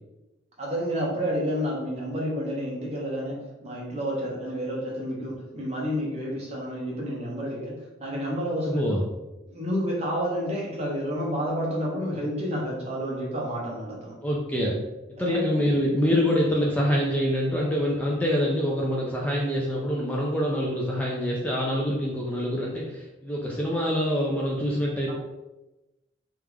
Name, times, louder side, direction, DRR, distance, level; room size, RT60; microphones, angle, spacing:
voice 1, 0.6-3.4 3.6-7.7 8.0-8.9 9.5-14.2 15.2-15.7 25.1-25.2, equal, 35° right, -4 dB, 1.2 m, -30 dB
voice 2, 8.6-9.0 14.2-14.8 15.2-25.1, equal, 10° left, -3 dB, 0.5 m, -25 dB
3.4 x 3.3 x 3.5 m, 1.0 s
head